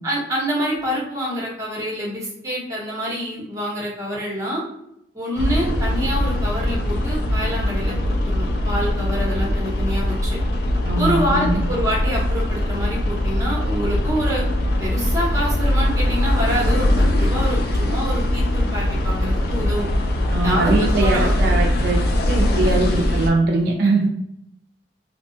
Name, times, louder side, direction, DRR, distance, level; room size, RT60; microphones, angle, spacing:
voice 1, 0.0-4.6 5.1-10.4 11.0-14.4 14.8-19.9 20.4-21.6, equal, 20° right, -4 dB, 0.8 m, -26 dB
sound 1, 5.4-23.3, left 1 dB, 60° left, 0.4 m, -21 dB
voice 2, 10.8-11.6 20.3-22.0 22.3-24.1, right 2 dB, 60° right, 0 dB, 0.3 m, -21 dB
2.7 x 2.2 x 2.6 m, 0.78 s
head